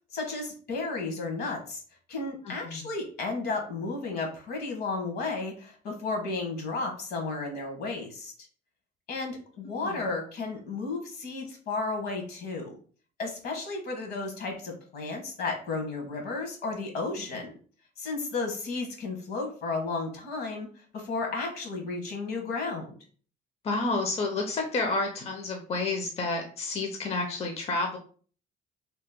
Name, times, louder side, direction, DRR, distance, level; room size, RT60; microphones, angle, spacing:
voice 1, 0.1-1.8 2.1-8.3 9.1-12.7 13.2-17.5 18.0-20.7 20.9-23.0, left 3 dB, 70° left, 3 dB, 1.1 m, -33 dB
voice 2, 2.4-2.8 9.8-10.0 23.6-28.0, left 3 dB, 35° left, 3 dB, 0.5 m, -30 dB
2.9 x 2.0 x 3.5 m, 0.42 s
cardioid pair, 110°, 17 cm